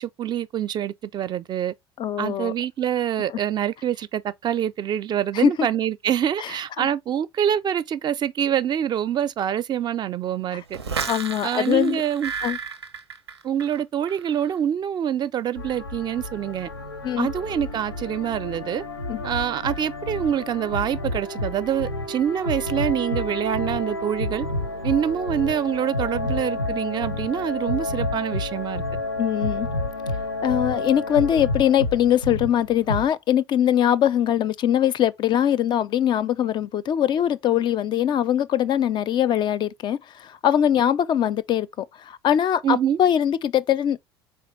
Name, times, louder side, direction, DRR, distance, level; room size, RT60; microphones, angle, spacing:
voice 1, 0.0-1.7 2.2-10.8 11.4-12.3 13.4-16.7 17.2-18.8 19.2-24.5 24.8-28.8 42.6-43.0, right 9 dB, 35° right, 0.4 m, -25 dB
voice 2, 2.0-2.5 3.3-3.4 5.3-5.7 6.4-6.5 6.8-6.9 11.1-12.0 12.4-12.6 17.0-17.3 19.1-19.2 29.2-29.7 30.4-44.0, left 10 dB, 35° left, 0.4 m, -22 dB
sound 1, 10.7-13.8 14.1-14.5, right 6 dB, 85° right, 0.5 m, -32 dB
sound 2, 15.5-33.1, left 2 dB, 90° left, 0.5 m, -30 dB
4.3 x 3.4 x 3.1 m
figure-of-eight pair, 65°, 13 cm